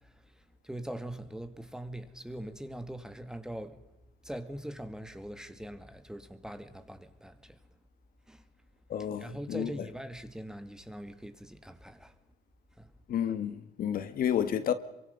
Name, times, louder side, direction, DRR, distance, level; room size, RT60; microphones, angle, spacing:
voice 1, 0.6-3.8 4.2-7.6 8.3-8.4 9.2-12.1 12.8-12.9, right 1 dB, 5° right, 2.3 m, -42 dB
voice 2, 8.9-9.7 13.1-14.7, left 9 dB, 60° left, 1.7 m, -30 dB
27.5 x 24.5 x 5.5 m
cardioid pair, 110°, 17 cm